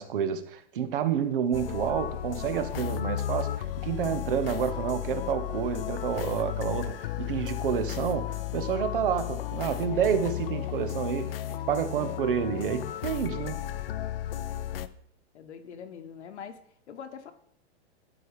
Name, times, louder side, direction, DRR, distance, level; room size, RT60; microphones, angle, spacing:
voice 1, 0.0-3.5 3.8-11.3 11.7-13.6, right 8 dB, 50° right, 0.8 m, -29 dB
sound 1, 1.5-14.9, left 12 dB, 60° left, 0.5 m, -34 dB
voice 2, 15.3-16.6 16.9-17.3, left 7 dB, 85° left, 1.2 m, -43 dB
11.5 x 4.8 x 4.8 m
supercardioid pair, 175°, 33 cm